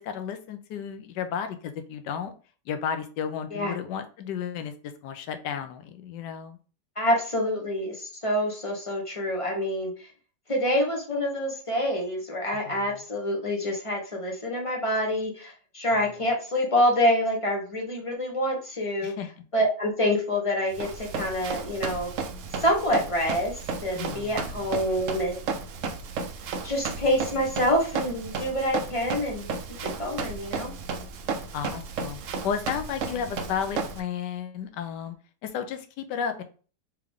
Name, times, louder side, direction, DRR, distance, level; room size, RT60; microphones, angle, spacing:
voice 1, 0.0-2.3 2.7-4.7 5.0-6.6 12.7-13.0 15.9-16.1 19.0-19.3 24.0-24.4 31.5-35.2 35.4-36.4, left 7 dB, 80° left, 8 dB, 1.2 m, -33 dB
voice 2, 7.0-10.1 10.5-19.1 19.5-22.1 22.6-25.4 26.6-29.5 30.0-30.7, equal, 25° left, 0 dB, 0.9 m, -26 dB
Run, 20.7-34.0, right 5 dB, 65° right, 0.8 m, -34 dB
3.6 x 3.4 x 3.5 m, 0.38 s
omnidirectional pair, 1.9 m